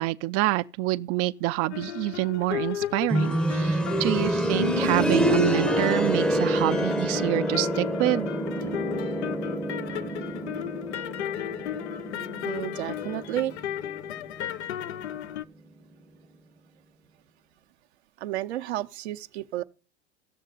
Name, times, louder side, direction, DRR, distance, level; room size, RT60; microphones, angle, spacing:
voice 1, 0.0-8.3, right 17 dB, 45° right, 0.5 m, -27 dB
sound 1, 1.7-5.3 5.7-15.4, left 11 dB, 85° left, 0.6 m, -35 dB
sound 2, 3.1-13.9 14.2-14.3 15.2-15.3, right 1 dB, 5° left, 0.7 m, -27 dB
Guitar, 7.5-15.2, left 8 dB, 60° left, 1.2 m, -43 dB
voice 2, 12.4-13.5 18.2-19.6, right 14 dB, 75° right, 0.8 m, -31 dB
16.5 x 6.5 x 3.9 m
hypercardioid pair, 100°, 33 cm